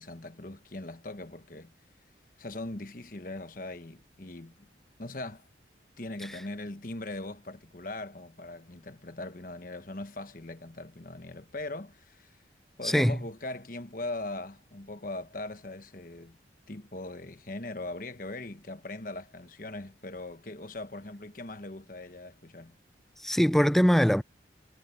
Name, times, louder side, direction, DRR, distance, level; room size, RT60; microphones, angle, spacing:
voice 1, 0.0-1.7 2.4-4.7 5.0-5.5 6.0-12.4 12.8-16.4 16.7-22.8, left 2 dB, 50° left, 1.3 m, -40 dB
voice 2, 12.8-13.2 23.2-24.2, equal, ahead, 0.4 m, -22 dB
head